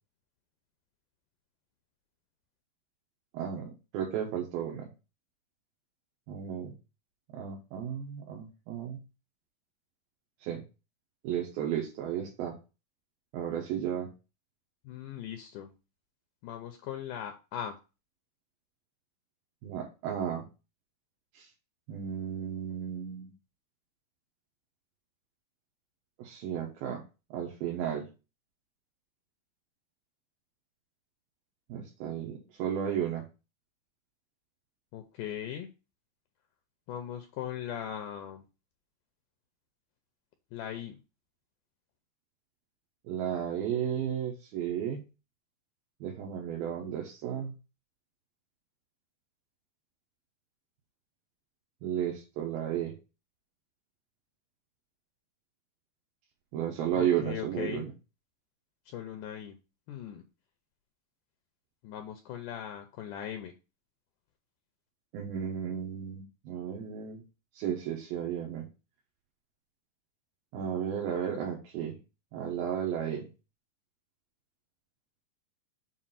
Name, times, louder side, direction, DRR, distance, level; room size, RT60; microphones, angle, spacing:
voice 1, 3.3-4.9 6.3-6.8 7.3-9.0 10.4-10.6 11.2-12.6 13.3-14.1 19.6-20.4 21.3-21.5 21.9-23.3 26.2-27.0 27.3-28.1 31.7-33.3 43.0-45.0 46.0-47.5 51.8-53.0 56.5-57.9 65.1-67.2 67.5-68.7 70.5-72.0 72.3-73.3, right 9 dB, 75° right, 0 dB, 2.8 m, -33 dB
voice 2, 14.8-15.7 16.4-17.7 34.9-35.7 36.9-38.4 40.5-41.0 56.9-57.9 58.9-59.6 59.9-60.2 61.8-63.5, left 10 dB, 85° left, 5 dB, 1.9 m, -39 dB
7.1 x 2.6 x 5.6 m, 0.30 s
omnidirectional pair, 4.3 m